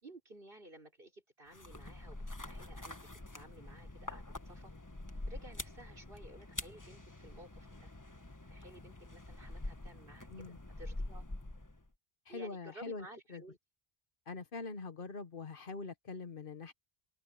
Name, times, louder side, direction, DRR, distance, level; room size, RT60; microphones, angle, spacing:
voice 1, 0.0-3.0 3.3-4.7 5.3-7.9 8.5-11.2 12.3-13.6, right 1 dB, 65° right, 4.8 m, -55 dB
sound 1, 1.5-11.9, left 2 dB, 20° left, 1.3 m, -46 dB
voice 2, 12.3-13.4 14.3-16.7, left 4 dB, 60° left, 1.2 m, -44 dB
open air
omnidirectional pair, 1.0 m